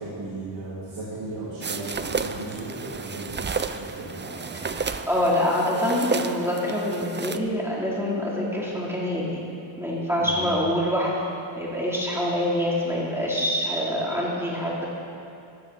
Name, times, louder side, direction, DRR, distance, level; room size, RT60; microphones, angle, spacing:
voice 1, 0.0-3.6 4.0-4.6 10.2-10.3, right 2 dB, 70° right, -9 dB, 3.3 m, -36 dB
sound 1, 1.6-7.4, right 5 dB, 25° right, 0.4 m, -32 dB
voice 2, 5.0-9.2 9.8-11.3 11.5-14.8, left 1 dB, 5° right, -6 dB, 2.6 m, -25 dB
14.0 x 12.5 x 3.8 m, 2.5 s
wide cardioid pair, 95°, 48 cm